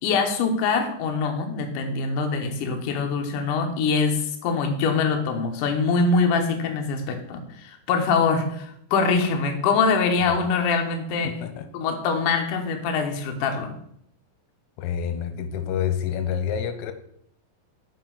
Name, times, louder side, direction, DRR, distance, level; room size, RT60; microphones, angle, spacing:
voice 1, 0.0-11.3 11.7-13.7, left 4 dB, 70° left, 4 dB, 2.3 m, -24 dB
voice 2, 11.2-11.7 14.8-16.9, left 8 dB, 90° left, 8 dB, 2.7 m, -28 dB
9.0 x 4.9 x 3.9 m, 0.71 s
omnidirectional pair, 4.4 m